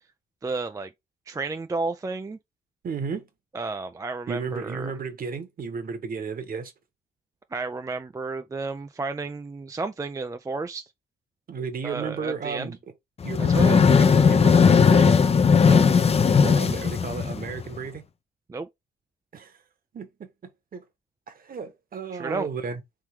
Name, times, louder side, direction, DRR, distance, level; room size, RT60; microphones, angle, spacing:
voice 1, 0.4-0.9 1.3-2.4 3.5-5.0 7.5-10.8 11.8-12.8 13.4-13.8 15.6-15.8 18.5-18.7 22.1-22.5, right 3 dB, 15° right, 0.4 m, -32 dB
voice 2, 2.8-3.3 4.3-6.7 11.5-12.8 13.2-15.2 16.4-18.0 19.3-19.6 19.9-20.3 20.7-20.8 21.3-22.8, right 5 dB, 45° right, 1.3 m, -33 dB
sound 1, 13.2-17.8, left 6 dB, 30° left, 0.6 m, -18 dB
3.7 x 3.0 x 4.5 m
cardioid pair, 90°, 20 cm